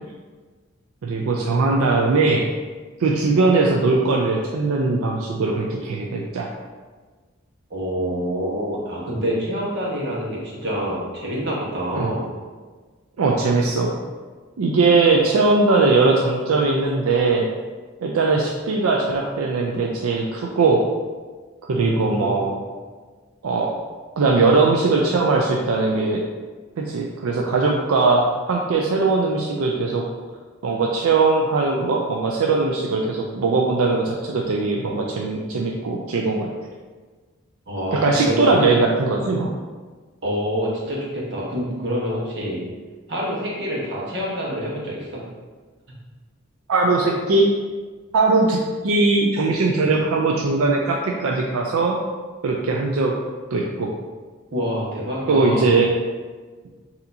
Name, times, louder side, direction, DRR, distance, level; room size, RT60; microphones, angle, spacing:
voice 1, 1.0-2.5 3.0-6.5 11.9-12.1 13.2-13.9 14.6-17.5 18.0-20.8 21.6-22.6 23.4-23.7 24.2-26.2 26.8-30.0 30.6-36.5 37.9-39.5 46.7-47.5 48.1-48.6 48.8-52.0 52.4-53.1 53.5-53.9 55.3-55.9, right 3 dB, 85° right, 0 dB, 0.4 m, -20 dB
voice 2, 7.7-12.2 21.7-22.4 37.7-38.6 40.2-42.6 43.1-45.2 54.5-55.7, equal, 55° right, -5 dB, 1.2 m, -26 dB
6.6 x 2.8 x 2.7 m, 1.4 s
head